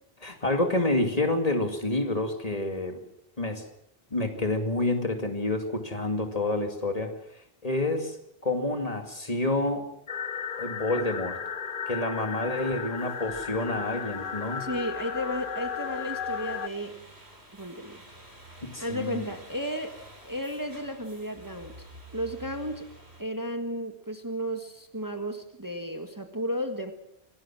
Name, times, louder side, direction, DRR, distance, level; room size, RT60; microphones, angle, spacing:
voice 1, 0.2-3.0 3.4-3.6 4.1-7.1 7.6-8.2 8.4-9.8 10.6-11.4 11.9-14.7 18.6-19.2, left 2 dB, 35° left, 4 dB, 2.6 m, -28 dB
sound 1, 10.1-16.7, left 7 dB, 55° left, 1.2 m, -35 dB
sound 2, 12.2-23.2, right 1 dB, 90° right, 5.0 m, -51 dB
voice 2, 14.6-17.0 17.5-18.0 18.8-21.7 22.1-22.9 23.2-26.9, equal, 20° right, 6 dB, 1.7 m, -33 dB
26.0 x 18.5 x 6.2 m, 0.79 s
omnidirectional pair, 1.1 m